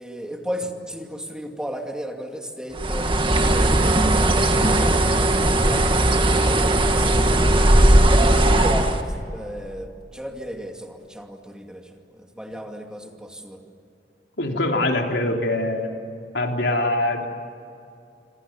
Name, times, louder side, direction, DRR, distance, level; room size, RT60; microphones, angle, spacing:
voice 1, 0.0-13.6, equal, 5° right, 3 dB, 2.5 m, -35 dB
Bird, 2.8-9.0, right 1 dB, 30° right, 1.9 m, -18 dB
voice 2, 14.4-15.9 16.3-17.3, left 1 dB, 85° left, 2 dB, 3.4 m, -23 dB
28.0 x 26.5 x 7.3 m, 2.6 s
head